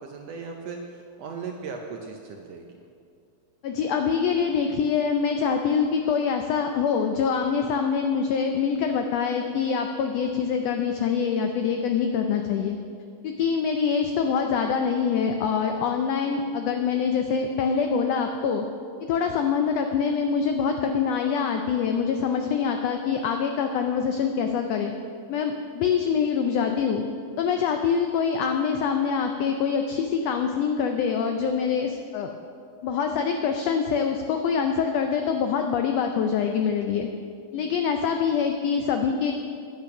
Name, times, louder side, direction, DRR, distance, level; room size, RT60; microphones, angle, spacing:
voice 1, 0.0-2.6, right 5 dB, 75° right, 2 dB, 1.5 m, -37 dB
voice 2, 3.6-12.8 13.2-18.6 19.1-24.9 25.3-27.0 27.4-32.3 32.8-37.1 37.5-39.3, left 6 dB, 90° left, 5 dB, 1.4 m, -25 dB
10.0 x 8.4 x 5.9 m, 2.3 s
omnidirectional pair, 3.6 m